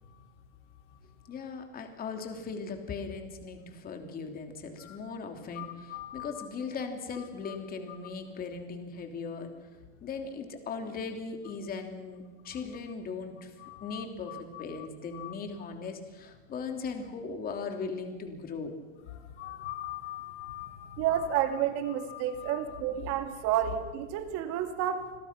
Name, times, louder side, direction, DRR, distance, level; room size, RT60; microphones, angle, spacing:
voice 1, 1.3-9.5 10.0-13.5 13.8-18.7, left 4 dB, 25° left, 5 dB, 3.1 m, -38 dB
voice 2, 5.5-6.4 13.6-14.9 15.1-15.3 19.4-21.2 22.1-22.8, left 13 dB, 80° left, 3 dB, 4.9 m, -42 dB
voice 3, 21.0-25.1, right 10 dB, 45° right, 7 dB, 2.4 m, -30 dB
28.5 x 21.5 x 6.0 m, 1.3 s
supercardioid pair, 155°, 35 cm